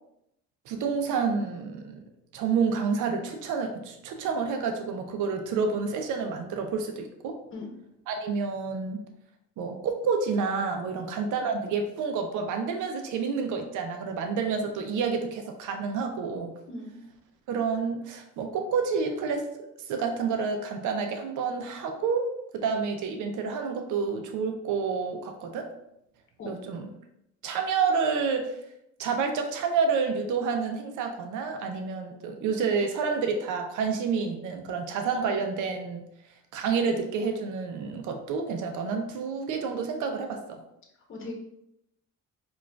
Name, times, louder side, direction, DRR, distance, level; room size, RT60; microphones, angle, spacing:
voice 1, 0.7-2.0 2.3-7.4 8.1-9.0 9.6-16.5 17.5-19.5 19.8-25.7 26.5-26.9 27.4-28.5 29.0-36.1 36.5-40.6, right 5 dB, 80° right, 4 dB, 0.5 m, -29 dB
voice 2, 7.5-7.7 10.9-11.0 16.7-17.0 26.4-26.5 41.1-41.3, left 2 dB, 40° left, 0 dB, 0.8 m, -38 dB
4.5 x 2.4 x 2.2 m, 0.80 s
cardioid pair, 90°, 30 cm